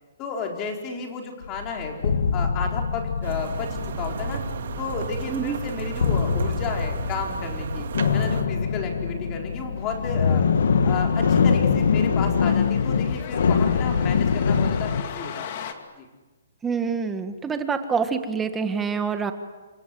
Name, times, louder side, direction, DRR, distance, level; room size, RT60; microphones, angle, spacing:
voice 1, 0.2-4.4 4.8-7.9 8.1-10.4 10.8-15.7 16.0-16.1, left 5 dB, 20° left, 2 dB, 4.3 m, -32 dB
sound 1, 1.4-15.0, left 6 dB, 80° left, 1.8 m, -24 dB
sound 2, 3.2-8.4, right 7 dB, 60° right, 2.2 m, -34 dB
voice 2, 5.3-5.6 16.6-19.3, right 5 dB, 10° right, 8 dB, 1.6 m, -26 dB
sound 3, 9.8-15.7, left 8 dB, 40° left, 2.4 m, -40 dB
29.0 x 25.5 x 7.8 m, 1.2 s
hypercardioid pair, 165°, 0 cm